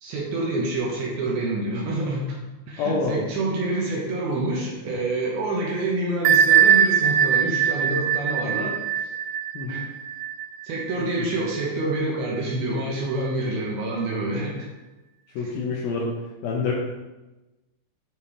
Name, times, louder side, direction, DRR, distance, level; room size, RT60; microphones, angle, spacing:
voice 1, 0.0-2.4 2.7-8.7 9.7-9.8 10.6-14.7, right 2 dB, 70° right, -2 dB, 2.6 m, -27 dB
voice 2, 2.8-3.3 4.9-5.0 9.5-9.8 11.0-11.3 14.4-14.5 15.4-16.1 16.4-16.7, left 4 dB, 75° left, -2 dB, 2.3 m, -27 dB
Bell, 6.3-11.7, right 9 dB, 85° right, 2.9 m, -21 dB
9.6 x 5.2 x 3.3 m, 1.1 s
omnidirectional pair, 5.2 m